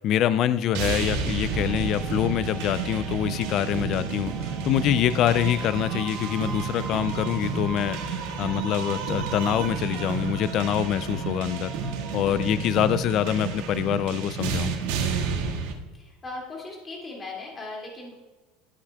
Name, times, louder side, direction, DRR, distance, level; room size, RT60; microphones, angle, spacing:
voice 1, 0.0-11.7 12.1-14.7, left 11 dB, 40° left, 14 dB, 0.3 m, -25 dB
sound 1, 0.7-15.7, right 6 dB, 85° right, 1.7 m, -31 dB
sound 2, 1.1-12.7, left 2 dB, 65° left, 1.7 m, -46 dB
sound 3, 1.5-14.3, right 5 dB, 45° right, 1.2 m, -44 dB
voice 2, 15.9-18.1, left 3 dB, 20° left, -1 dB, 2.4 m, -38 dB
13.0 x 8.5 x 2.3 m, 1.2 s
cardioid pair, 155°, 0 cm